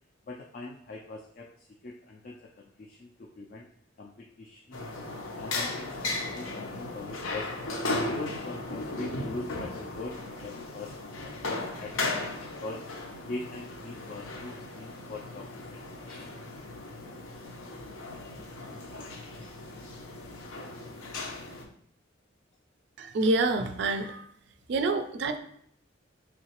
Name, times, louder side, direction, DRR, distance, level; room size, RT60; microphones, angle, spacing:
voice 1, 0.3-3.7 4.0-4.8 5.3-7.8 8.1-12.9 13.3-16.4, left 2 dB, 45° left, 1 dB, 0.3 m, -42 dB
sound 1, 4.7-21.6, left 2 dB, 85° left, 0.7 m, -36 dB
voice 2, 23.0-24.2 24.7-25.4, right 2 dB, 60° right, 8 dB, 0.3 m, -27 dB
3.8 x 3.1 x 2.9 m, 0.69 s
head